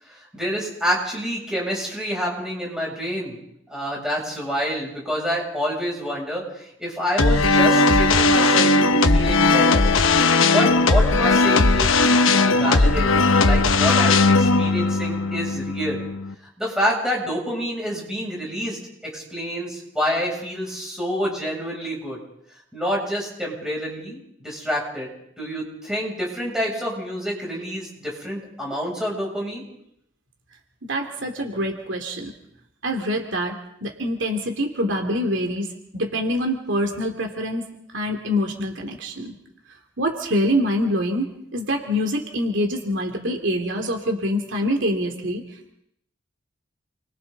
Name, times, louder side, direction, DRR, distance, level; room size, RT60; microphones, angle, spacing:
voice 1, 0.1-3.4 3.7-9.8 10.5-16.0 16.6-22.2 22.7-29.6, equal, 5° right, -3 dB, 7.9 m, -28 dB
sound 1, 7.2-16.3, left 3 dB, 85° left, 1.1 m, -18 dB
voice 2, 30.9-32.3 32.8-35.7 35.9-39.3 40.0-41.3 41.5-45.4, equal, 70° right, 3 dB, 2.8 m, -25 dB
29.5 x 24.0 x 4.1 m, 0.74 s
head